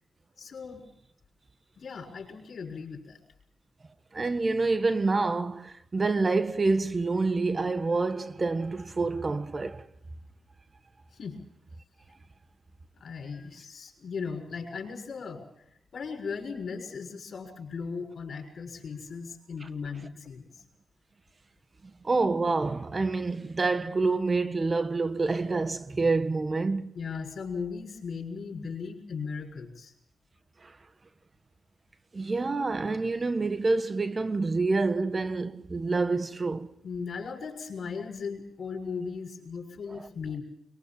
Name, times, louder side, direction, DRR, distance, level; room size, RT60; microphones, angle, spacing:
voice 1, 0.4-0.9 1.8-3.2 11.1-11.4 13.0-20.5 26.9-29.9 36.8-40.4, left 5 dB, 60° left, 6.3 m, -37 dB
voice 2, 4.1-9.9 19.6-19.7 22.0-26.9 30.6-30.7 32.1-36.7 39.9-40.0, right 3 dB, 40° right, 1.5 m, -27 dB
22.5 x 22.5 x 7.4 m
cardioid pair, 55°, 0 cm